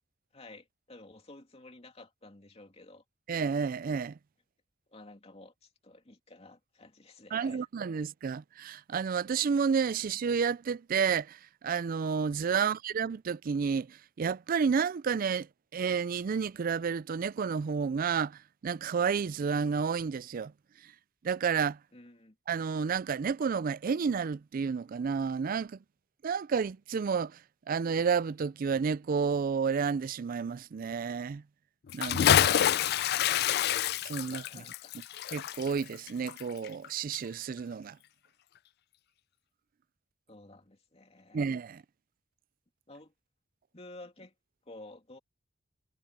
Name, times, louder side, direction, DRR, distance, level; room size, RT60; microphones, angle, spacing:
voice 1, 0.3-3.0 4.9-7.7 12.6-12.7 21.9-22.4 34.3-35.2 40.3-41.5 42.9-43.1 43.7-44.3 44.7-45.2, left 2 dB, 30° left, 2.7 m, -52 dB
voice 2, 3.3-4.2 7.3-15.5 15.7-20.5 21.2-21.8 22.5-25.8 26.2-27.4 27.7-31.4 31.9-32.6 34.0-34.6 35.3-38.0 41.3-41.8, right 6 dB, 45° right, 0.4 m, -31 dB
Bathtub (filling or washing) / Splash splatter, 31.9-36.9 37.1-37.2, left 10 dB, 55° left, 0.4 m, -27 dB
head